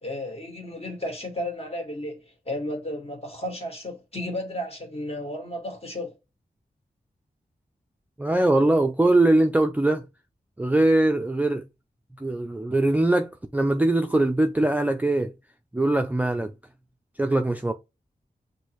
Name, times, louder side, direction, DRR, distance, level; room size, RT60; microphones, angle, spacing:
voice 1, 0.0-6.2, left 1 dB, 35° left, 1.8 m, -33 dB
voice 2, 8.2-10.0 10.6-11.6 12.2-15.3 15.7-16.5 17.2-17.7, right 2 dB, 10° right, 0.4 m, -22 dB
6.3 x 2.7 x 3.0 m
wide cardioid pair, 80°, 17 cm